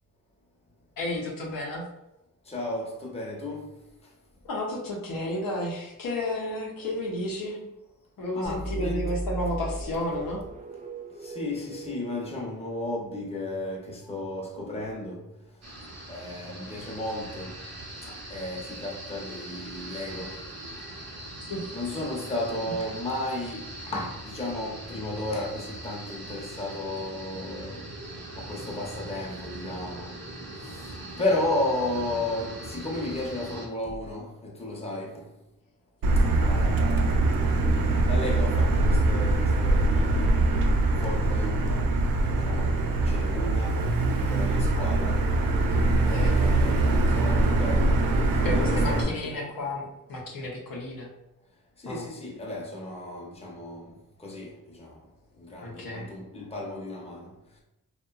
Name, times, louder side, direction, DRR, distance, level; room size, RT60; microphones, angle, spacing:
voice 1, 1.0-1.8 4.4-7.6 8.2-10.4 21.5-21.6 45.9-46.4 48.4-51.1 51.9-52.1 55.6-56.1, left 1 dB, 70° left, 0.7 m, -32 dB
voice 2, 2.5-3.8 8.3-9.1 11.2-15.2 16.1-17.6 18.0-20.7 21.7-27.9 28.3-30.1 30.7-35.3 36.3-37.3 37.8-40.6 41.0-41.9 42.4-42.8 43.0-43.8 44.3-45.3 46.0-48.1 48.5-49.5 51.8-53.9 54.2-55.0 55.4-57.3, left 1 dB, 15° left, 0.7 m, -34 dB
sound 1, 8.5-13.2, right 1 dB, 20° right, 0.4 m, -36 dB
sound 2, 15.6-33.7, right 1 dB, 50° right, 0.8 m, -41 dB
Motor vehicle (road), 36.0-49.0, right 2 dB, 75° right, 0.5 m, -23 dB
2.7 x 2.2 x 2.3 m
cardioid pair, 60°, 35 cm